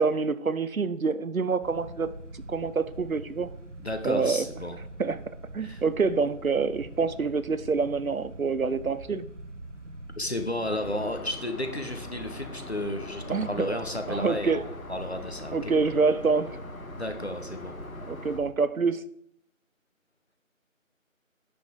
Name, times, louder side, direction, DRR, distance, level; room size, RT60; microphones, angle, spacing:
voice 1, 0.0-2.1 2.5-3.5 4.0-4.4 5.0-5.2 5.5-9.3 13.3-13.8 14.1-14.6 15.5-16.6 18.0-19.0, right 4 dB, 85° right, 14 dB, 0.7 m, -26 dB
sound 1, 1.6-18.5, right 1 dB, 60° right, 1.1 m, -44 dB
voice 2, 3.8-4.7 5.6-5.8 10.2-15.7 16.9-17.7, left 1 dB, 50° left, 6 dB, 1.1 m, -33 dB
Aircraft, 10.6-18.4, left 3 dB, 85° left, 1.0 m, -43 dB
8.3 x 6.1 x 3.7 m, 0.71 s
figure-of-eight pair, 175°, 41 cm